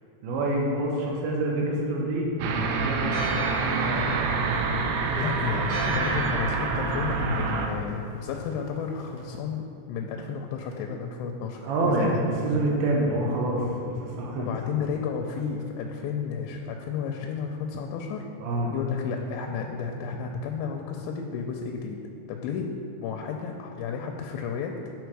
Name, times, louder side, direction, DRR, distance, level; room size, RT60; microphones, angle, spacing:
voice 1, 0.2-3.2 3.5-4.1 11.6-14.5 18.4-18.7, right 1 dB, 75° right, -2 dB, 2.7 m, -27 dB
sound 1, 2.4-7.7, right 4 dB, 90° right, 2.9 m, -27 dB
Church bell, 3.1-9.4, right 1 dB, 50° right, 2.6 m, -39 dB
voice 2, 5.1-12.2 14.4-18.3 18.7-22.0 22.3-22.7 23.0-24.7, left 6 dB, 85° left, 3 dB, 2.7 m, -32 dB
9.1 x 4.7 x 4.7 m, 2.7 s
omnidirectional pair, 5.0 m